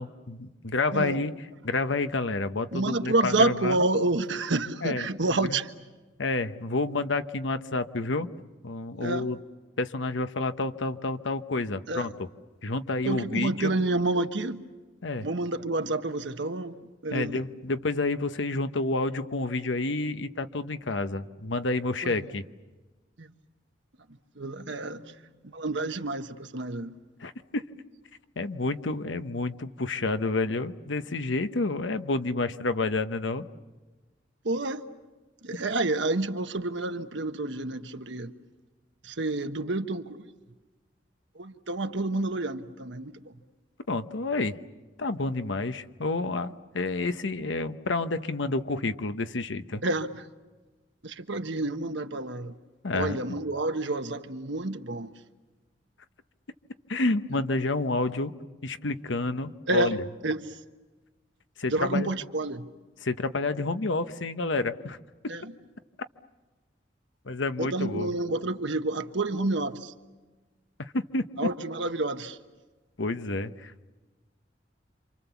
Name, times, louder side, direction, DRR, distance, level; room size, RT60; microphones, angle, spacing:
voice 1, 0.0-1.3 1.6-3.8 4.8-5.0 6.2-8.3 8.6-9.4 9.8-12.1 12.6-13.7 15.0-15.3 17.1-22.4 27.2-27.6 28.4-33.4 35.5-35.6 43.9-44.6 45.0-49.8 52.8-53.2 56.9-58.3 58.6-60.0 61.6-62.1 63.0-65.0 67.3-68.1 70.8-71.3 73.0-73.9, left 2 dB, 80° left, 1.0 m, -29 dB
voice 2, 0.9-1.2 2.7-5.7 9.0-9.3 11.9-12.1 13.0-14.6 15.2-16.8 17.0-17.4 22.0-22.2 23.2-23.3 24.3-26.9 34.4-34.8 35.4-38.3 39.0-40.2 41.3-43.3 49.8-50.3 51.0-52.5 52.9-55.1 59.7-60.6 61.7-62.7 65.3-65.5 67.6-69.9 71.4-72.4, right 2 dB, 75° right, 1.3 m, -29 dB
28.5 x 26.5 x 7.1 m
head